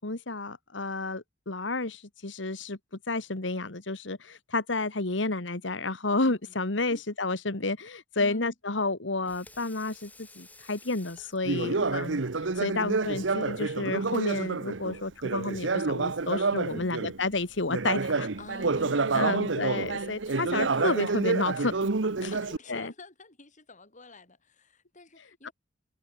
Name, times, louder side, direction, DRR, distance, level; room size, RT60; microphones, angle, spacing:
voice 1, 0.0-2.8 3.1-12.2 12.6-18.3 19.1-21.7 22.2-22.3 22.7-22.9 25.4-25.5, left 3 dB, 75° left, 2.0 m, -31 dB
voice 2, 8.2-8.5 11.6-12.2 16.7-17.0 18.4-19.6 20.3-20.4 22.3-25.5, left 1 dB, 40° left, 7.4 m, -47 dB
Water tap faucet / Sink (filling or washing), 9.0-14.5, left 2 dB, 10° left, 6.5 m, -56 dB
Conversation, 11.4-17.2 17.7-22.6, right 3 dB, 75° right, 1.0 m, -28 dB
head